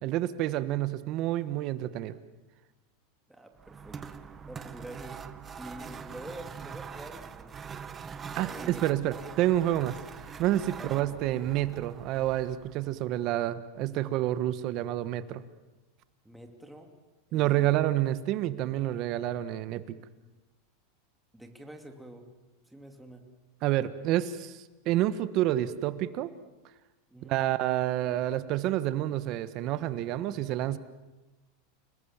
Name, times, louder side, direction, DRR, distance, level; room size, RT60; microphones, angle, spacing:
voice 1, 0.0-2.2 8.3-15.4 17.3-19.8 23.6-26.3 27.2-30.8, right 13 dB, 45° right, 13 dB, 1.4 m, -29 dB
voice 2, 3.3-4.0 4.4-5.2 5.5-7.9 8.4-8.8 10.8-10.9 16.2-16.9 17.3-17.8 21.3-22.3 22.7-23.3 27.1-27.4, right 1 dB, 5° right, 4 dB, 2.8 m, -46 dB
sound 1, 3.6-12.9, right 6 dB, 20° right, 1.2 m, -43 dB
29.5 x 20.0 x 7.4 m, 1.1 s
supercardioid pair, 135°, 0 cm